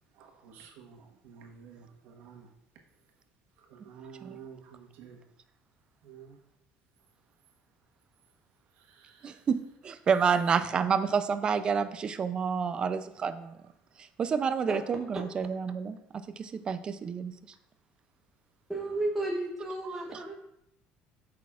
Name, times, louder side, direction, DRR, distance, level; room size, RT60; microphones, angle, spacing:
voice 1, 0.2-1.0 1.2-2.5 3.7-5.2 6.0-6.3, right 7 dB, 70° right, 2 dB, 1.3 m, -50 dB
voice 2, 9.2-13.5 14.2-17.3 19.9-20.0, right 6 dB, 25° right, 11 dB, 0.4 m, -29 dB
voice 3, 18.7-20.3, right 2 dB, 5° right, -3 dB, 0.9 m, -32 dB
12.5 x 6.1 x 2.4 m, 0.80 s
cardioid pair, 165°, 4 cm